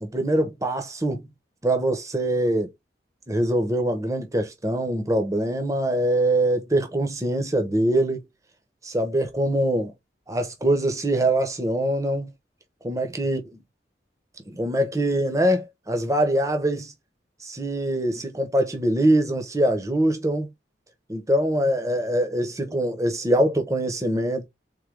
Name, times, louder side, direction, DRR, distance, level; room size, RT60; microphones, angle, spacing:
voice 1, 0.0-1.2 1.6-2.7 3.3-8.2 8.8-9.9 10.3-12.3 12.8-13.6 14.5-16.9 17.4-20.5 21.1-24.5, right 1 dB, 20° right, 0.9 m, -23 dB
3.9 x 3.8 x 3.4 m
head